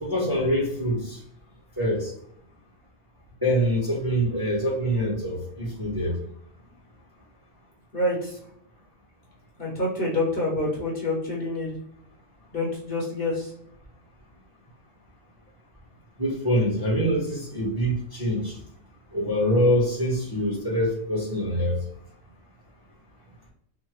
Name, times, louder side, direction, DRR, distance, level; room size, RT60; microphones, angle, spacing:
voice 1, 0.0-1.2 1.8-2.1 3.4-6.1 16.2-18.6 19.1-21.8, equal, 20° right, -5 dB, 0.8 m, -25 dB
voice 2, 7.9-8.4 9.6-11.7 12.5-13.5, left 2 dB, 45° left, -4 dB, 1.0 m, -27 dB
3.6 x 2.1 x 3.0 m, 0.70 s
omnidirectional pair, 1.5 m